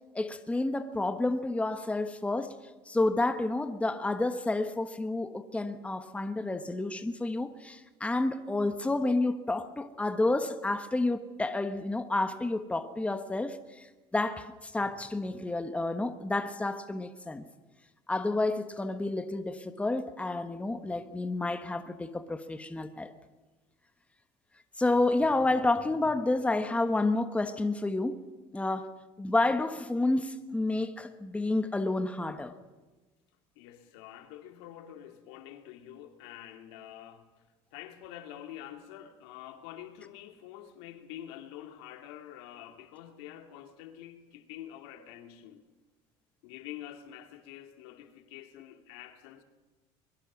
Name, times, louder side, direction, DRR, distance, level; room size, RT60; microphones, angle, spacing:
voice 1, 0.1-2.6 2.9-13.9 14.1-17.4 18.1-23.1 24.8-28.2 28.5-32.5, left 2 dB, 10° left, 1.3 m, -30 dB
voice 2, 33.6-37.3 37.7-45.6 46.4-49.4, left 11 dB, 80° left, 2.4 m, -47 dB
23.0 x 22.0 x 6.2 m
supercardioid pair, 105°, 13 cm